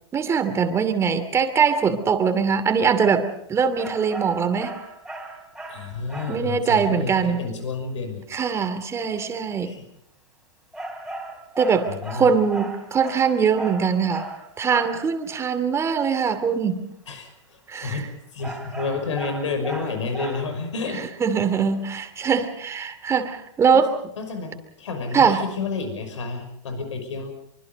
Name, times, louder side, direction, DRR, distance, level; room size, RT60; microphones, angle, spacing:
voice 1, 0.1-4.8 6.3-7.5 8.3-9.8 11.6-14.3 14.6-16.9 17.7-18.0 21.2-23.9 25.1-25.4, right 6 dB, 20° right, 9 dB, 2.6 m, -22 dB
sound 1, 3.8-6.5 10.7-15.1 18.4-20.7, right 2 dB, ahead, 4.1 m, -36 dB
voice 2, 5.7-8.2 9.6-9.8 11.9-12.3 17.1-21.0 23.7-23.8 24.2-27.3, left 4 dB, 85° left, 7 dB, 5.8 m, -30 dB
24.5 x 24.5 x 5.3 m, 0.73 s
hypercardioid pair, 130°, 15 cm